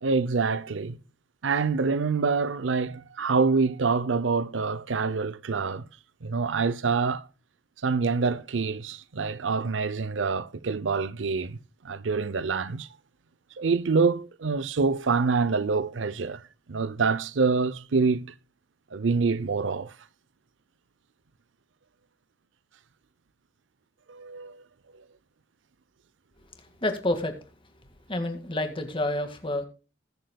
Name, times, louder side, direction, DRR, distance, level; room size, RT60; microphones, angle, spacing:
voice 1, 0.0-1.0 1.4-5.9 6.2-7.3 7.8-11.6 11.8-12.9 13.6-16.4 16.7-18.3 18.9-19.9 24.1-24.6, right 4 dB, 85° right, 0.6 m, -26 dB
voice 2, 26.8-27.3 28.1-29.6, left 1 dB, 30° left, 1.9 m, -28 dB
20.5 x 7.8 x 2.3 m
head